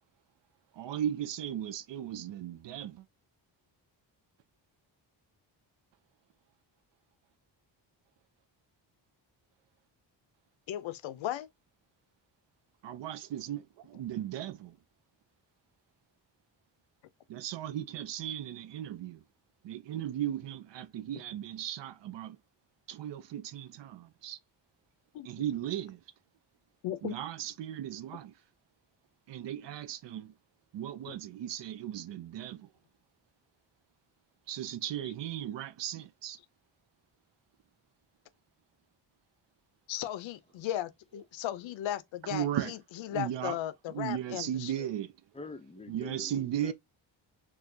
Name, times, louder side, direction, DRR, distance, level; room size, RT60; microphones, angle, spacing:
voice 1, 0.7-3.0 12.8-14.8 17.3-19.2 19.6-22.4 22.9-24.4 25.2-26.0 27.0-28.3 29.3-30.3 30.7-32.7 34.5-36.4 42.2-43.6 43.9-45.2 45.9-46.7, right 11 dB, 65° right, 0.6 m, -36 dB
voice 2, 10.7-11.5 25.1-25.3 26.8-27.1 39.9-42.5 43.1-44.7, left 12 dB, 80° left, 0.6 m, -36 dB
voice 3, 45.3-46.7, left 3 dB, 15° left, 0.5 m, -45 dB
4.4 x 2.5 x 2.6 m
cardioid pair, 105°, 46 cm